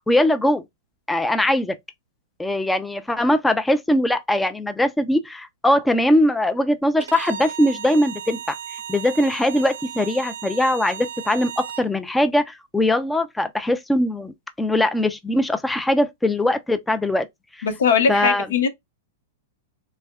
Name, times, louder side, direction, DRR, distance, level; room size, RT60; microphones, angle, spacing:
voice 1, 0.1-0.6 1.1-1.8 2.4-17.3 17.5-17.7 18.1-18.5, left 1 dB, 5° left, 0.3 m, -21 dB
Bowed string instrument, 7.0-11.9, right 9 dB, 85° right, 0.5 m, -35 dB
voice 2, 17.6-18.7, left 6 dB, 80° left, 0.9 m, -20 dB
3.3 x 3.2 x 2.3 m
hypercardioid pair, 130°, 0 cm